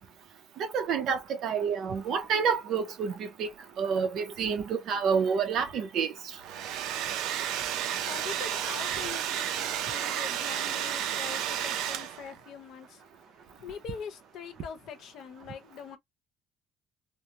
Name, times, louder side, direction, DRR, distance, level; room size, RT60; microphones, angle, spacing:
voice 1, 0.6-3.5 3.8-6.1, right 6 dB, 50° right, 0.8 m, -28 dB
Domestic sounds home sounds, 6.3-12.4, right 10 dB, 75° right, 0.5 m, -32 dB
voice 2, 8.0-13.0 13.6-16.0, left 7 dB, 55° left, 1.0 m, -43 dB
3.3 x 2.1 x 2.7 m
cardioid pair, 170°, 0 cm